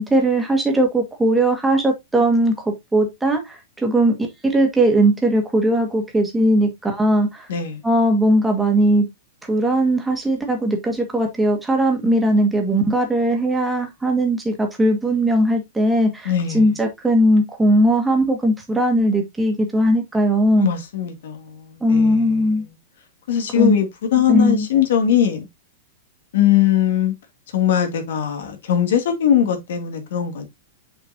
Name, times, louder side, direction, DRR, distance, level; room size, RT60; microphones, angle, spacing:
voice 1, 0.0-4.1 4.4-7.5 7.8-9.1 9.5-20.7 21.8-22.7 23.5-23.8 24.3-24.7, right 1 dB, 5° right, 1.6 m, -19 dB
voice 2, 7.5-7.8 16.2-16.7 20.6-22.7 23.3-25.5 26.3-27.1 27.5-30.4, left 9 dB, 70° left, 2.3 m, -20 dB
7.4 x 5.2 x 2.7 m
supercardioid pair, 170°, 0 cm